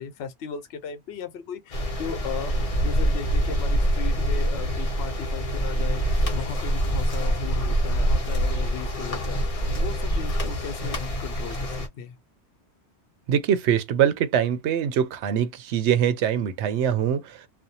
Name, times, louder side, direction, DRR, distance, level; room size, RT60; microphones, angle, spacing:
voice 1, 0.0-12.2, left 6 dB, 70° left, 0.8 m, -37 dB
sound 1, 1.7-11.9, equal, 40° left, 0.7 m, -25 dB
voice 2, 13.3-17.4, right 9 dB, 75° right, 0.8 m, -23 dB
2.5 x 2.1 x 2.7 m
omnidirectional pair, 1.2 m